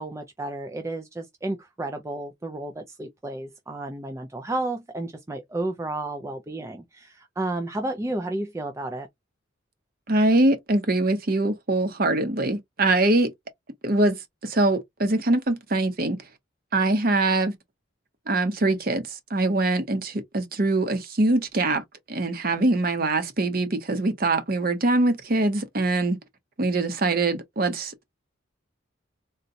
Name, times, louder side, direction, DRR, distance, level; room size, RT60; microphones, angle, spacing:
voice 1, 0.0-9.1, right 2 dB, 15° right, 0.3 m, -32 dB
voice 2, 10.1-13.3 13.8-14.2 14.4-16.2 16.7-17.5 18.3-21.8 22.1-26.2 26.6-27.9, right 2 dB, 45° right, 0.8 m, -23 dB
3.9 x 2.2 x 2.6 m
head